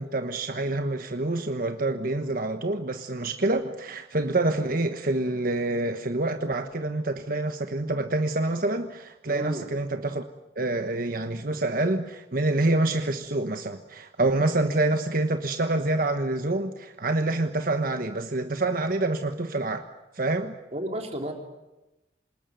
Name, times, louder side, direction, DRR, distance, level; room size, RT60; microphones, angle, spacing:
voice 1, 0.0-10.2 10.6-19.9 20.1-20.5, right 2 dB, 50° right, 7 dB, 1.3 m, -27 dB
voice 2, 9.3-9.7 20.7-21.3, equal, 35° right, 3 dB, 3.2 m, -32 dB
27.0 x 20.0 x 9.4 m, 1.0 s
head